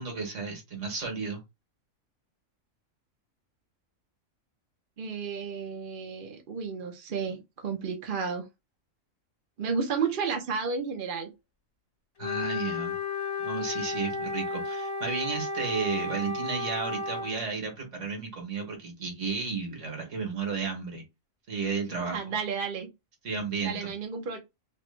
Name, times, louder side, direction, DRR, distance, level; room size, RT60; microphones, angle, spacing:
voice 1, 0.0-1.4 12.2-12.9 13.4-21.0 21.5-22.2 23.2-23.9, right 4 dB, 65° right, 1.6 m, -33 dB
voice 2, 5.0-8.4 9.6-11.3 22.1-22.9 23.6-24.4, right 5 dB, 50° right, 0.8 m, -32 dB
Wind instrument woodwind instrument, 12.2-17.4, left 3 dB, 50° left, 1.4 m, -33 dB
3.2 x 3.0 x 3.2 m
omnidirectional pair, 1.4 m